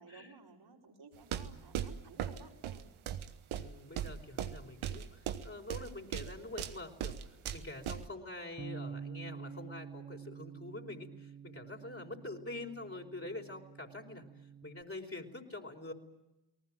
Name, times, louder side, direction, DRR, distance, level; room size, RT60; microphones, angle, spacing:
voice 1, 0.0-2.9 12.0-12.2, right 4 dB, 65° right, -1 dB, 5.2 m, -56 dB
sound 1, 1.1-8.1, right 10 dB, 90° right, 1.2 m, -39 dB
voice 2, 3.5-7.2 7.5-14.2 14.6-15.9, left 2 dB, 30° left, 0 dB, 4.7 m, -45 dB
Bass guitar, 8.6-14.8, right 6 dB, 25° right, 1.3 m, -48 dB
29.5 x 19.0 x 7.7 m, 0.92 s
supercardioid pair, 40°, 47 cm